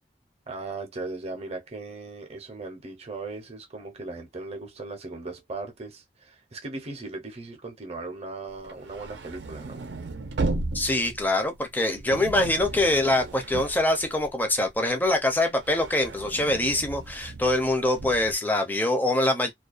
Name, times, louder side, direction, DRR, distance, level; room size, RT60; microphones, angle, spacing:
voice 1, 0.5-9.9, right 3 dB, 40° right, 0.7 m, -38 dB
sound 1, 8.6-14.7 15.0-18.3, right 2 dB, 75° right, 0.5 m, -35 dB
voice 2, 10.7-19.5, left 1 dB, 10° left, 0.6 m, -24 dB
2.3 x 2.2 x 2.4 m
head